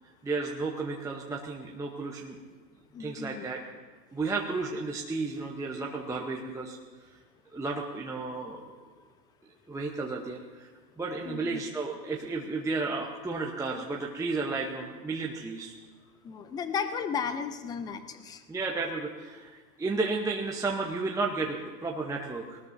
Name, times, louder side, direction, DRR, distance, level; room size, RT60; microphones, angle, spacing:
voice 1, 0.2-2.4 3.0-3.6 4.1-6.8 7.5-8.7 9.7-10.7 11.0-15.7 18.5-22.6, right 3 dB, 5° right, -1 dB, 0.9 m, -33 dB
voice 2, 2.9-3.6 11.2-11.6 16.2-18.4, left 6 dB, 10° left, 10 dB, 0.4 m, -34 dB
19.5 x 19.0 x 2.7 m, 1.4 s
hypercardioid pair, 115°, 50 cm